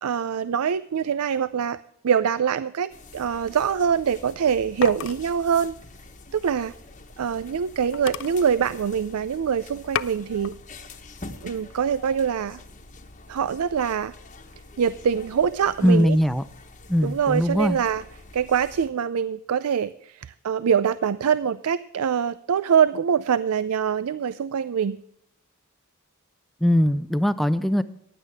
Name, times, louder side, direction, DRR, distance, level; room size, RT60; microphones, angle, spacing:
voice 1, 0.0-1.8 2.0-5.7 6.3-6.7 7.2-10.6 11.4-12.6 13.3-14.1 14.8-16.2 17.0-18.0 18.3-25.0, right 7 dB, 75° right, 16 dB, 0.4 m, -24 dB
sound 1, 2.9-18.9, left 2 dB, 35° left, 1.2 m, -46 dB
sound 2, 4.8-7.3 7.6-7.7 7.9-9.3 9.7-10.6 11.0-11.5, left 9 dB, 60° left, 0.4 m, -35 dB
voice 2, 15.8-16.4 16.9-17.8 26.6-27.8, equal, ahead, 12 dB, 0.5 m, -20 dB
15.5 x 10.0 x 3.5 m, 0.72 s
head